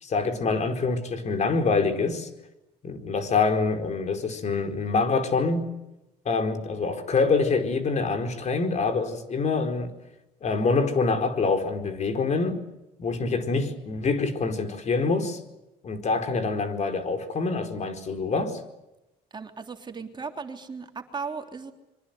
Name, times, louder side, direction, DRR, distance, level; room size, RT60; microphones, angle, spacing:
voice 1, 0.0-2.3 2.8-5.7 6.2-9.9 10.4-12.6 13.0-15.4 15.8-18.6, left 4 dB, 45° left, 4.6 m, -25 dB
voice 2, 19.3-21.7, right 5 dB, 25° right, 3.4 m, -36 dB
26.5 x 24.0 x 8.1 m
cardioid pair, 110°, 17 cm